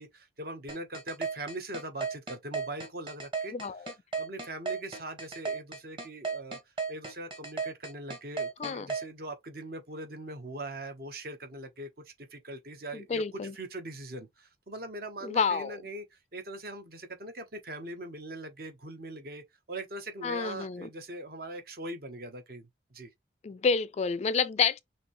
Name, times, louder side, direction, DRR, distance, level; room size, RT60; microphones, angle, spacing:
voice 1, 0.0-3.5 4.1-6.6 6.9-13.2 13.5-23.1, right 1 dB, 55° right, 0.9 m, -41 dB
sound 1, 0.7-9.0, right 5 dB, 30° right, 1.2 m, -34 dB
voice 2, 3.5-3.9 8.6-8.9 12.9-13.5 15.2-15.8 20.2-20.9 23.4-24.8, left 5 dB, 35° left, 0.3 m, -29 dB
5.9 x 2.8 x 3.0 m
head